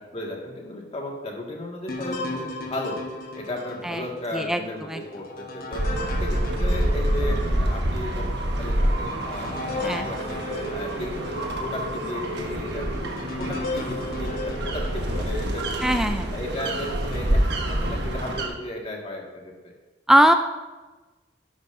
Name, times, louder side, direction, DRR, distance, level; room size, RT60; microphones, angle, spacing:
voice 1, 0.0-3.0 3.3-5.8 6.2-10.4 10.7-16.0 16.3-17.4 17.7-19.7, left 1 dB, 35° left, -1 dB, 1.9 m, -35 dB
sound 1, 1.9-7.6 8.2-8.3 8.8-16.0 16.6-17.2, left 2 dB, 50° left, 1.1 m, -36 dB
sound 2, 5.7-18.5, right 1 dB, 65° right, 1.3 m, -27 dB
voice 2, 15.8-16.3 20.1-20.3, equal, 5° right, 7 dB, 0.4 m, -20 dB
11.5 x 11.0 x 2.6 m, 1.2 s
head